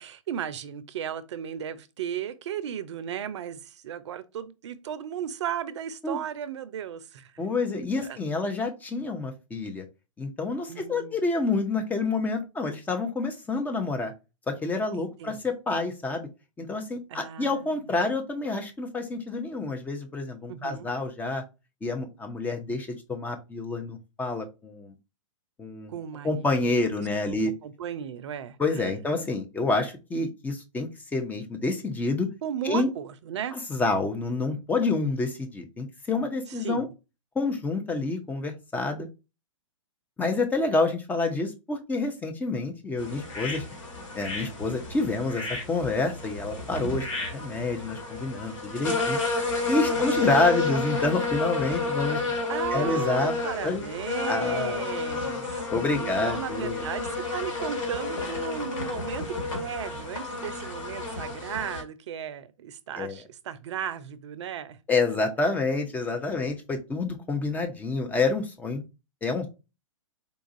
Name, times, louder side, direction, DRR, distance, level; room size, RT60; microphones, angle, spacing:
voice 1, 0.0-7.4 8.0-8.2 10.7-11.2 14.9-15.4 17.1-17.8 20.5-20.9 25.9-26.8 27.2-28.9 29.8-29.9 32.4-33.6 36.5-36.9 49.8-50.3 51.7-51.9 52.5-55.7 56.0-64.8, right 9 dB, 60° right, 0.5 m, -35 dB
voice 2, 7.4-9.8 10.2-14.1 14.5-16.3 16.6-21.4 21.8-24.9 25.6-25.9 26.2-27.5 28.6-32.3 32.6-32.9 33.5-36.9 37.4-39.1 40.2-43.6 44.1-49.2 49.7-52.2 52.7-53.3 53.6-53.9 54.3-54.8 55.7-56.8 63.0-63.2 64.9-68.8 69.2-69.5, left 3 dB, 10° left, 0.5 m, -28 dB
sound 1, 43.0-61.8, left 3 dB, 70° left, 1.6 m, -31 dB
4.0 x 2.4 x 2.5 m
hypercardioid pair, 115°, 17 cm